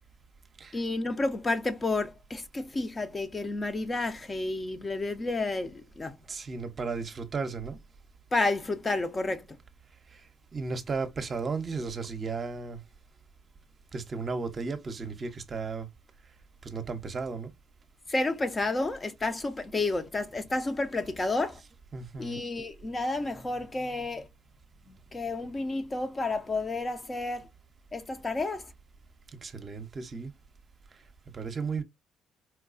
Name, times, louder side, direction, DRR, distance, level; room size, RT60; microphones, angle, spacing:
voice 1, 0.7-6.2 8.3-9.5 18.1-21.6 22.2-24.3 24.9-27.5 27.9-28.7, left 2 dB, 30° left, 0.7 m, -31 dB
voice 2, 6.3-7.8 10.5-12.8 13.9-15.9 16.6-17.5 21.9-22.4 29.4-30.3 31.3-31.8, right 4 dB, 40° right, 0.7 m, -34 dB
4.4 x 2.3 x 2.5 m
supercardioid pair, 60°, 0 cm